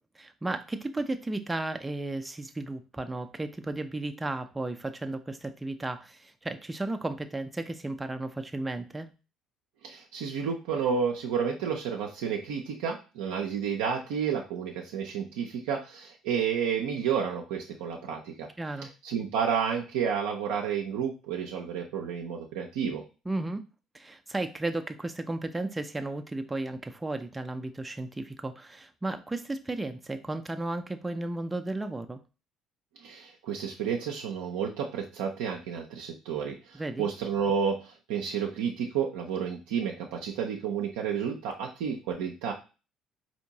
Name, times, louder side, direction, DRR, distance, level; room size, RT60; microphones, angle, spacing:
voice 1, 0.2-9.1 18.6-18.9 23.3-23.6 23.9-32.2 36.7-37.1, right 2 dB, 15° right, 6 dB, 0.4 m, -34 dB
voice 2, 9.8-18.5 19.0-23.0 33.0-42.5, right 7 dB, 75° right, 0 dB, 0.5 m, -31 dB
4.3 x 2.8 x 2.7 m, 0.32 s
hypercardioid pair, 55°, 0 cm